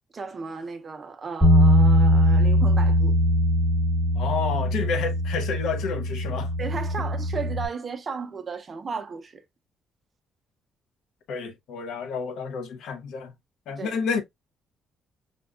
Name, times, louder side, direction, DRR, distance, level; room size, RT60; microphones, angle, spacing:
voice 1, 0.1-3.2 6.6-9.4 13.7-14.0, right 5 dB, 25° right, 0.5 m, -34 dB
Bass guitar, 1.4-7.7, equal, 5° left, 1.2 m, -21 dB
voice 2, 4.1-6.5 11.3-13.3 13.7-14.2, left 5 dB, 70° left, 0.6 m, -30 dB
5.1 x 2.2 x 2.3 m
cardioid pair, 170°, 0 cm